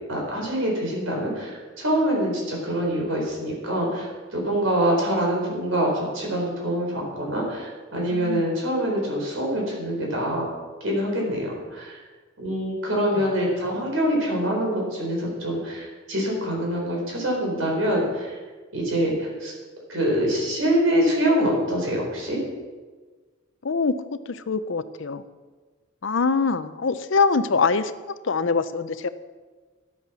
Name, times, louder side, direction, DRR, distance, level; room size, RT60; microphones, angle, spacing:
voice 1, 0.1-10.4 10.8-12.0 12.4-18.4 18.7-19.5 19.9-22.4, equal, 85° right, -1 dB, 4.5 m, -25 dB
voice 2, 8.1-8.5 13.1-13.3 23.6-25.2 26.0-27.9 28.2-29.1, left 4 dB, 70° left, 13 dB, 0.6 m, -24 dB
12.0 x 8.6 x 6.2 m, 1.4 s
head